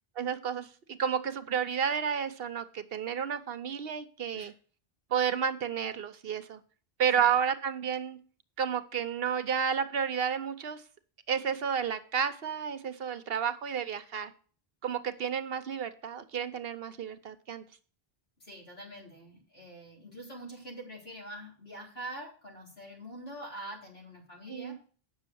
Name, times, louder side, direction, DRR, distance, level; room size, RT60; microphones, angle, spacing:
voice 1, 0.2-4.5 5.1-6.6 7.0-8.2 8.6-10.8 11.3-14.3 14.8-17.6 24.5-24.8, right 7 dB, 70° right, 11 dB, 1.0 m, -31 dB
voice 2, 18.4-24.8, right 1 dB, 75° left, -2 dB, 4.0 m, -45 dB
8.7 x 6.4 x 7.0 m, 0.40 s
omnidirectional pair, 1.0 m